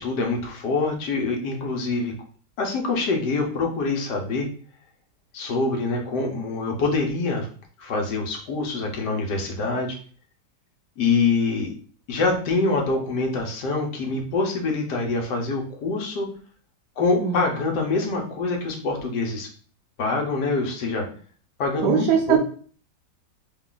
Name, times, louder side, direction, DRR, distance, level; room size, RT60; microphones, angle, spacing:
voice 1, 0.0-2.1 2.6-4.5 5.3-7.5 7.8-10.0 11.0-11.7 12.1-16.3 17.0-19.5 20.0-21.0 21.6-22.4, left 3 dB, 85° left, 1 dB, 1.5 m, -25 dB
voice 2, 21.8-22.4, right 8 dB, 85° right, 0 dB, 1.2 m, -20 dB
3.7 x 2.4 x 3.8 m, 0.44 s
omnidirectional pair, 1.8 m